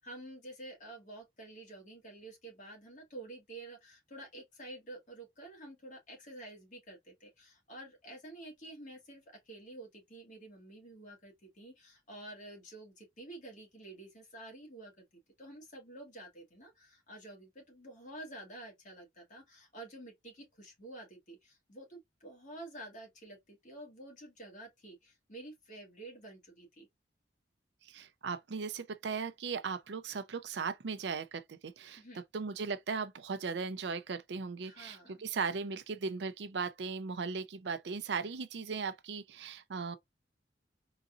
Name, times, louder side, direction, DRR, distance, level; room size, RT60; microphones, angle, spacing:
voice 1, 0.0-15.0 15.4-26.9 32.0-32.2 34.6-35.1, right 1 dB, 45° left, 1.7 m, -50 dB
voice 2, 27.8-32.0 32.3-40.0, right 5 dB, 75° right, 0.5 m, -37 dB
3.9 x 2.6 x 2.4 m
head